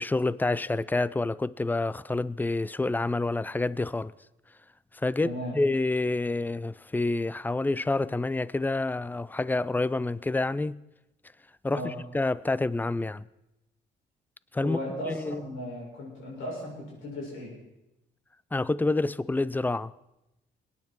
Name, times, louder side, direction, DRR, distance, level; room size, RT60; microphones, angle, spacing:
voice 1, 0.0-4.1 4.9-10.8 11.6-13.2 14.5-14.8 15.1-15.4 18.5-19.9, left 2 dB, 10° left, 0.4 m, -28 dB
voice 2, 5.2-5.6 11.7-11.9 14.6-17.5, left 1 dB, 90° left, 6.6 m, -36 dB
21.5 x 9.6 x 4.6 m
cardioid pair, 90°, 20 cm